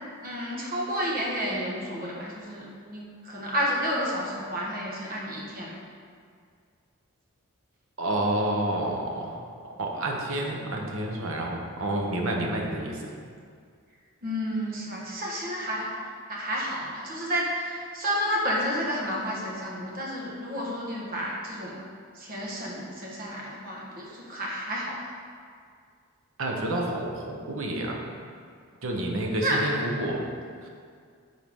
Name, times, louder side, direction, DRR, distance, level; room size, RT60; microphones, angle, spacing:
voice 1, 0.2-5.8 14.2-15.9 16.3-21.8 22.1-25.0 29.4-30.1, equal, 40° right, -4 dB, 1.4 m, -31 dB
voice 2, 8.0-9.3 9.6-13.1 26.4-28.0 28.8-30.2 30.6-30.7, right 1 dB, 70° right, 0 dB, 1.0 m, -29 dB
9.3 x 4.6 x 3.7 m, 2.1 s
head